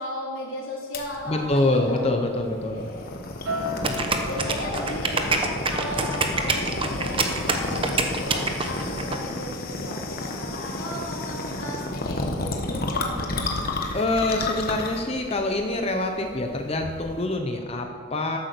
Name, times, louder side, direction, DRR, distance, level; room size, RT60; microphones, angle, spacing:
voice 1, 0.0-2.0 2.3-3.2 4.3-13.4, left 1 dB, 70° left, -4 dB, 3.5 m, -35 dB
sound 1, 0.9-17.2, left 2 dB, 45° left, 1.2 m, -32 dB
voice 2, 1.3-2.8 13.9-18.4, left 2 dB, 30° left, 3 dB, 0.8 m, -25 dB
Acoustic guitar, 3.4-7.9 8.3-8.6, left 1 dB, 85° right, 3.6 m, -36 dB
sound 2, 3.8-9.2, right 3 dB, 25° right, 1.0 m, -26 dB
13.5 x 8.4 x 6.7 m, 2.1 s
head